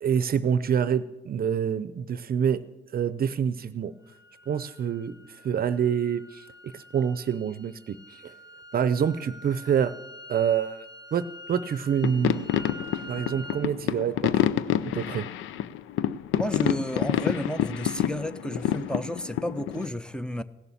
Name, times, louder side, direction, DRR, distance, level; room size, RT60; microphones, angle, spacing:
voice 1, 0.0-2.6 2.9-3.9 4.5-5.2 5.4-8.3 8.7-9.9 10.3-10.8 11.1-12.6 13.1-14.5 14.8-15.3, right 8 dB, 50° right, 14 dB, 0.6 m, -27 dB
sound 1, 4.0-13.7, left 1 dB, 60° left, 1.6 m, -46 dB
sound 2, 12.0-19.9, left 11 dB, 80° left, 0.5 m, -28 dB
voice 2, 16.3-20.4, left 1 dB, 5° left, 14 dB, 0.6 m, -32 dB
16.5 x 7.0 x 8.5 m, 1.0 s
cardioid pair, 90°, 20 cm